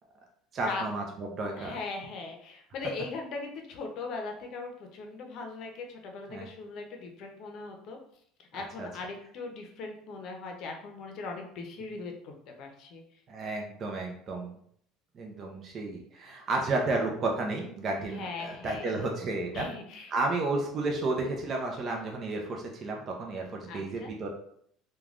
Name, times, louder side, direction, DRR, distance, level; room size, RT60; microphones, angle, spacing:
voice 1, 0.5-1.8 6.3-6.5 8.5-8.9 13.3-14.5 15.1-19.7 20.1-24.3, right 2 dB, 40° right, 1 dB, 0.5 m, -32 dB
voice 2, 1.5-8.0 8.5-13.0 18.1-19.0 19.5-20.1 23.7-24.1, left 3 dB, 60° left, 3 dB, 0.6 m, -39 dB
3.1 x 2.3 x 2.4 m, 0.65 s
cardioid pair, 115°, 0 cm